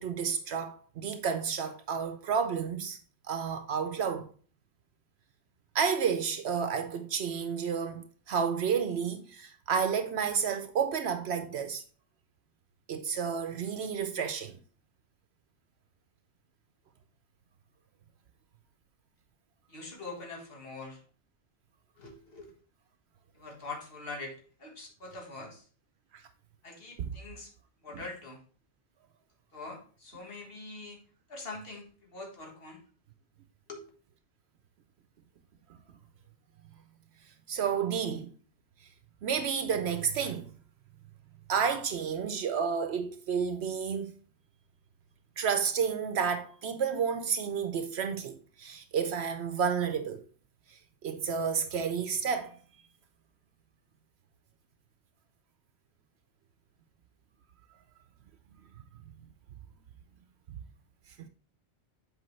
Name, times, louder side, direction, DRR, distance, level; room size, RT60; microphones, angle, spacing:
voice 1, 0.0-3.0 3.3-4.3 5.7-11.8 12.9-14.5 27.0-27.1 27.9-28.0 37.5-38.3 39.2-40.5 41.5-44.1 45.4-50.3 50.7-52.6 61.2-61.3, right 6 dB, 70° right, 0.9 m, -31 dB
voice 2, 19.7-21.0 22.0-22.5 23.3-25.6 26.6-27.5 27.8-28.4 29.5-31.0 31.3-32.8 33.7-33.9, left 3 dB, 60° left, 1.7 m, -43 dB
7.6 x 4.8 x 3.1 m
omnidirectional pair, 1.1 m